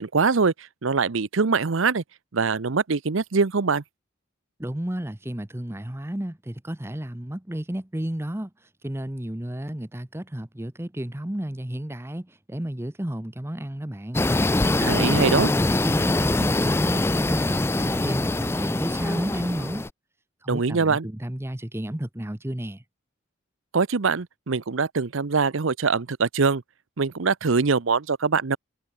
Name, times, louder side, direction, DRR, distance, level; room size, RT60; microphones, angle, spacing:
voice 1, 0.0-2.0 2.3-3.8 14.8-15.5 20.5-21.1 23.7-26.6 27.0-28.6, right 4 dB, 75° right, 0.8 m, -23 dB
voice 2, 4.6-8.5 8.8-14.2 14.7-19.8 20.4-22.8, right 1 dB, 10° right, 0.8 m, -32 dB
sound 1, 14.1-19.9, left 2 dB, 10° left, 0.4 m, -23 dB
head